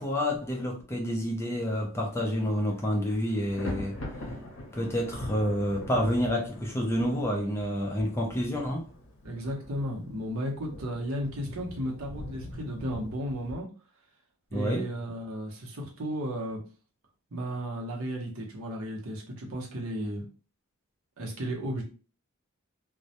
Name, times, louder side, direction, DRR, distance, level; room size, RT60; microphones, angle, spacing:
voice 1, 0.0-3.9 4.7-8.8 14.5-14.8, equal, 10° left, 0.4 m, -28 dB
Thunder, 2.1-2.4 2.7-13.5, left 1 dB, 65° left, 0.7 m, -42 dB
voice 2, 9.2-13.7 14.5-16.6 17.3-20.2 21.2-21.8, equal, 75° right, 0.7 m, -34 dB
2.2 x 2.1 x 2.7 m
head